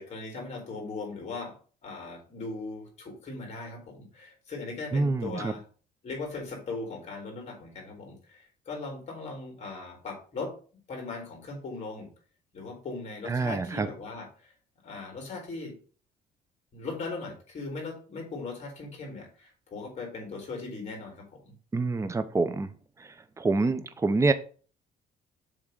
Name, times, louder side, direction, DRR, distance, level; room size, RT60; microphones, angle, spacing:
voice 1, 0.0-1.6 1.8-5.6 6.0-10.5 10.9-12.1 12.5-14.5 14.8-15.7 16.7-21.5, left 3 dB, 40° left, 0 dB, 3.5 m, -39 dB
voice 2, 4.9-5.5 13.3-13.9 21.7-22.7 23.4-24.3, right 3 dB, 15° right, 11 dB, 0.7 m, -26 dB
7.2 x 3.6 x 5.1 m, 0.40 s
cardioid pair, 110°, 17 cm